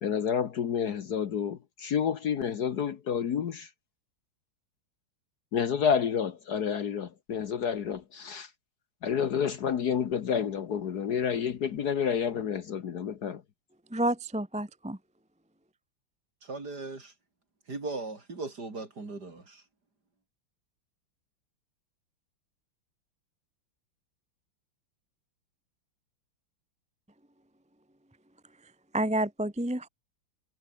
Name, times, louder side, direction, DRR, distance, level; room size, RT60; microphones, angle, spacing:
voice 1, 0.0-3.7 5.5-8.5 9.0-13.4, left 7 dB, 55° left, 1.5 m, -29 dB
voice 2, 13.9-15.0 28.9-29.9, right 1 dB, 5° right, 0.8 m, -29 dB
voice 3, 16.4-17.1 17.7-19.5, right 3 dB, 50° right, 4.9 m, -38 dB
omnidirectional pair, 2.2 m